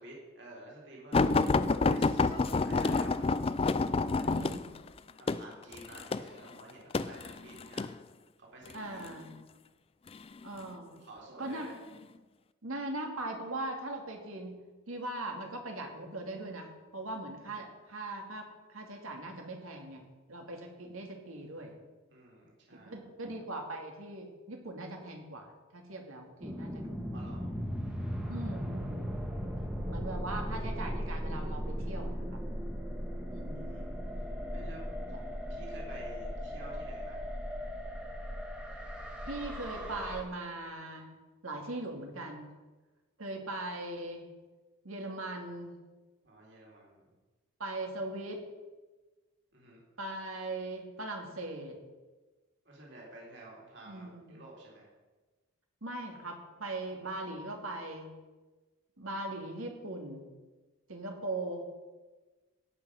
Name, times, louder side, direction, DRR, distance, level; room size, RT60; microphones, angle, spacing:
voice 1, 0.0-1.4 1.9-3.2 3.9-4.5 5.2-7.9 8.5-9.1 10.9-11.7 22.1-23.0 27.1-27.4 28.2-28.4 33.6-33.9 34.5-34.8 35.5-37.2 46.2-47.0 49.5-49.8 52.7-54.9 57.0-57.1, right 1 dB, 55° right, -3 dB, 3.7 m, -50 dB
sound 1, 1.1-7.9 8.7-9.1 10.1-10.7 11.5-11.6 12.0-12.1, left 3 dB, 25° left, 0.3 m, -28 dB
voice 2, 1.3-1.7 4.3-4.7 8.7-9.3 10.4-11.0 11.4-11.7 12.6-14.5 14.9-20.0 20.3-21.7 22.7-25.5 25.7-27.2 28.3-29.1 29.8-32.3 33.3-33.9 35.1-35.2 39.3-41.1 41.4-42.5 43.2-44.2 44.8-45.7 47.6-48.4 50.0-51.8 53.9-54.4 55.8-58.1 59.0-60.2 60.9-61.6, right 2 dB, 85° right, 2 dB, 2.5 m, -40 dB
sound 2, 26.4-40.2, equal, 5° right, 1.4 m, -37 dB
16.5 x 5.9 x 6.5 m, 1.2 s
head